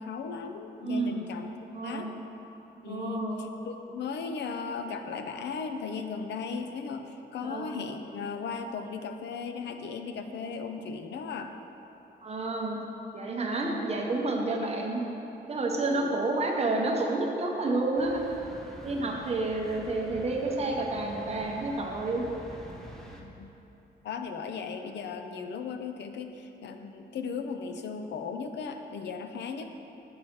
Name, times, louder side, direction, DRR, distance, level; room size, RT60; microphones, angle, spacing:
voice 1, 0.0-2.2 2.8-11.5 13.6-13.9 14.5-14.7 15.8-16.3 18.9-19.3 23.2-23.5 24.0-29.6, left 5 dB, 70° left, 6 dB, 0.5 m, -37 dB
voice 2, 0.8-1.2 1.7-2.1 2.9-3.4 7.4-7.7 12.2-12.8 13.1-15.0 15.5-18.2 18.8-22.2, right 2 dB, 35° right, 0 dB, 0.8 m, -30 dB
sound 1, 18.0-23.2, equal, ahead, 0.6 m, -46 dB
7.6 x 4.7 x 4.3 m, 3.0 s
wide cardioid pair, 150°, 18 cm